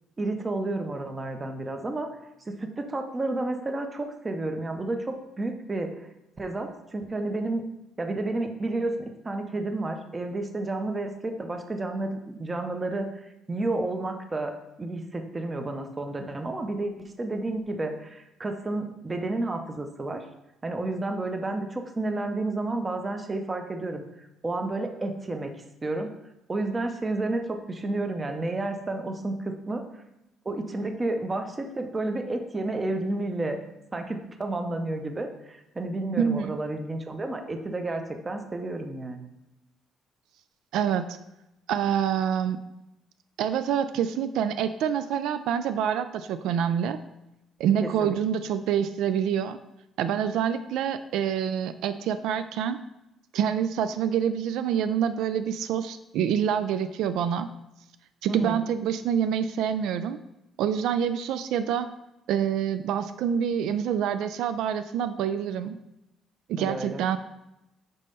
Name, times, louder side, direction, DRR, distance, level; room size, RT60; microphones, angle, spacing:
voice 1, 0.2-2.1 2.5-6.1 6.4-7.6 8.0-20.3 20.6-24.1 24.4-25.5 25.8-26.1 26.5-29.8 30.4-33.6 33.9-39.3 47.8-48.1 58.3-58.6 66.6-67.0, right 2 dB, 15° right, 5 dB, 0.6 m, -31 dB
voice 2, 36.2-36.6 40.7-41.0 41.7-42.6 43.4-47.0 47.6-49.6 50.0-52.8 53.3-57.5 58.2-60.2 60.6-61.9 62.3-65.8 66.5-67.2, right 8 dB, 80° right, 11 dB, 0.3 m, -26 dB
5.4 x 4.2 x 5.3 m, 0.90 s
cardioid pair, 165°, 0 cm